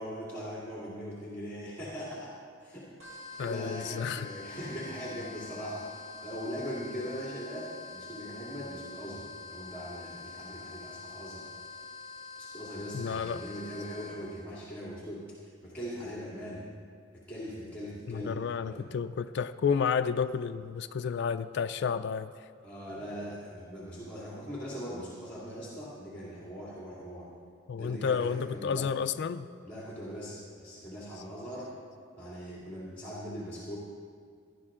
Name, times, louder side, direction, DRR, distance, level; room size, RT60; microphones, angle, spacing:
voice 1, 0.0-2.3 2.6-11.5 12.4-16.6 17.1-18.9 22.6-27.3 27.8-28.9 29.6-31.7 32.2-33.8, equal, 10° left, -7 dB, 2.3 m, -40 dB
sound 1, 3.0-14.4, left 4 dB, 40° right, 3.8 m, -46 dB
voice 2, 3.4-4.3 12.9-13.4 18.1-22.3 27.7-29.5, left 6 dB, 60° left, 9 dB, 0.4 m, -31 dB
16.5 x 11.5 x 3.7 m, 2.2 s
head